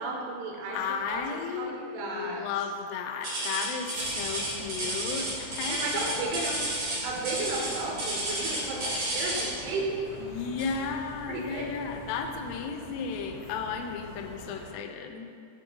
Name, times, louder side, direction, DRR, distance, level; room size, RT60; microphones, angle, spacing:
voice 1, 0.0-2.4 5.7-6.6 7.0-10.2 11.3-11.8, right 3 dB, 85° right, -1 dB, 3.0 m, -34 dB
voice 2, 0.7-6.4 10.3-15.3, left 5 dB, 90° left, 5 dB, 2.7 m, -34 dB
sound 1, 3.2-9.6 10.6-10.8 11.4-11.5 12.2-12.3, right 1 dB, 60° right, 1.1 m, -32 dB
sound 2, 3.9-14.7, left 2 dB, 60° left, 1.9 m, -46 dB
8.3 x 5.1 x 3.7 m, 2.3 s
omnidirectional pair, 4.7 m